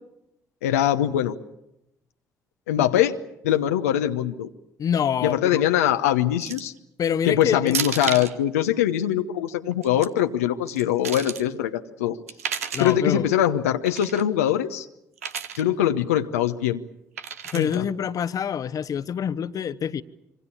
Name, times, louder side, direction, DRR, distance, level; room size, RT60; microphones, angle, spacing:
voice 1, 0.6-1.3 2.7-3.2 3.4-4.5 5.2-6.7 7.3-12.2 12.8-14.9 15.6-16.8 17.5-17.8, left 11 dB, 85° left, 0.9 m, -22 dB
voice 2, 4.8-5.6 7.0-7.8 12.7-13.3 17.5-20.0, left 8 dB, 50° left, 1.0 m, -26 dB
sound 1, 6.4-6.8 7.7-8.3 9.7-10.1 10.7-11.4 12.3-13.0 13.9-14.2 15.2-15.6 17.2-17.8, right 7 dB, 90° right, 0.9 m, -32 dB
26.0 x 25.0 x 7.1 m
hypercardioid pair, 50°, 8 cm